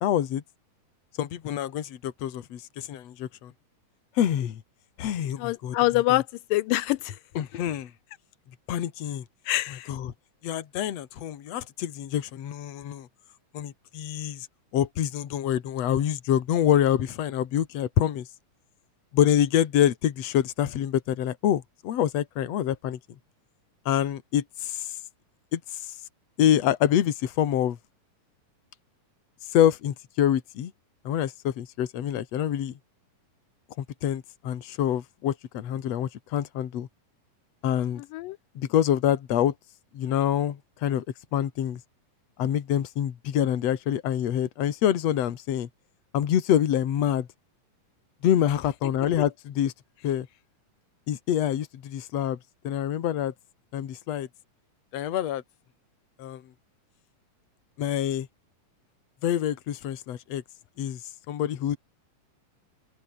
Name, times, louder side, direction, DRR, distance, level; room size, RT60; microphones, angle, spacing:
voice 1, 0.0-0.4 1.2-3.5 4.2-4.6 5.0-6.2 7.4-7.9 8.7-9.2 9.9-10.1 10.4-13.1 13.5-14.5 14.7-18.3 19.1-23.0 23.9-25.0 25.5-25.9 26.4-27.8 29.5-30.7 31.0-32.8 33.8-36.9 37.6-38.0 38.6-39.5 39.9-41.0 41.3-41.8 42.4-45.7 46.1-47.3 48.2-49.7 50.0-50.3 51.1-52.4 52.6-53.3 53.7-54.3 54.9-55.4 56.2-56.4 57.8-58.3 59.2-60.4 60.8-61.0 61.3-61.8, left 10 dB, 55° left, 2.6 m, -26 dB
voice 2, 5.4-7.2 9.5-9.9 38.1-38.4, left 17 dB, 85° left, 2.3 m, -25 dB
open air
omnidirectional pair, 3.9 m